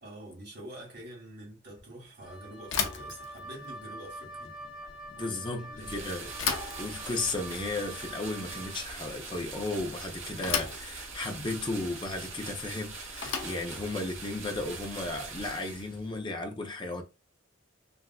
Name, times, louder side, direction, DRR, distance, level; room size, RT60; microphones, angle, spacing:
voice 1, 0.0-4.5 5.2-6.1, right 1 dB, 60° right, 1.8 m, -46 dB
Wind instrument woodwind instrument, 2.2-8.9, right 1 dB, 5° right, 0.8 m, -46 dB
Bicycle / Thump thud, 2.6-15.7, left 6 dB, 75° left, 0.6 m, -38 dB
voice 2, 5.1-6.3 6.8-17.0, left 2 dB, 25° left, 0.6 m, -35 dB
sound 1, 5.7-16.2, right 4 dB, 90° right, 1.2 m, -43 dB
3.2 x 2.4 x 2.3 m
head